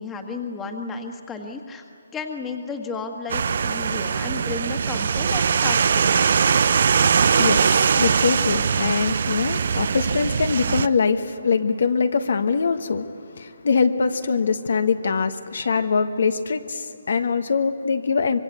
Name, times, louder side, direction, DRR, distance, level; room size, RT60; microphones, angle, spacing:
voice 1, 0.0-1.8 2.1-6.4, left 4 dB, 10° left, 4 dB, 1.6 m, -33 dB
sound 1, 3.3-10.9, right 6 dB, 55° right, 0.6 m, -21 dB
voice 2, 7.4-18.4, left 5 dB, 70° left, 8 dB, 1.3 m, -23 dB
25.0 x 22.0 x 8.3 m, 2.2 s
hypercardioid pair, 160°, 0 cm